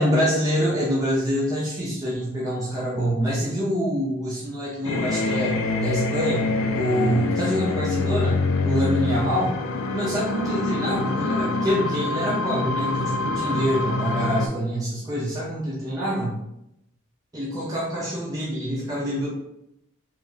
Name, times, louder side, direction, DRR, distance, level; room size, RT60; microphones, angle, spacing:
voice 1, 0.0-9.5 9.9-16.4 17.3-19.3, equal, 15° right, -6 dB, 0.4 m, -26 dB
sound 1, 4.8-14.5, left 3 dB, 70° left, 0.3 m, -25 dB
3.0 x 2.4 x 2.4 m, 0.83 s
head